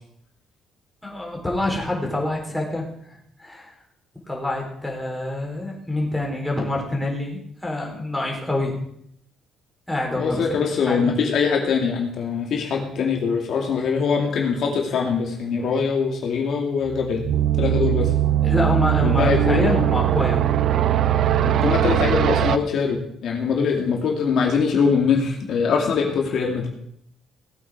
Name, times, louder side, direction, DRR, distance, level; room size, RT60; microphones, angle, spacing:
voice 1, 1.0-2.9 3.4-3.7 4.3-8.8 9.9-11.1 18.4-20.4, left 1 dB, 5° left, -1 dB, 3.9 m, -26 dB
voice 2, 10.1-17.2 17.6-18.1 19.0-19.8 21.4-26.7, left 5 dB, 60° left, 1 dB, 2.3 m, -22 dB
sound 1, 16.8-22.6, right 11 dB, 60° right, 0.5 m, -20 dB
18.0 x 8.6 x 4.7 m, 0.70 s
cardioid pair, 130°, 0 cm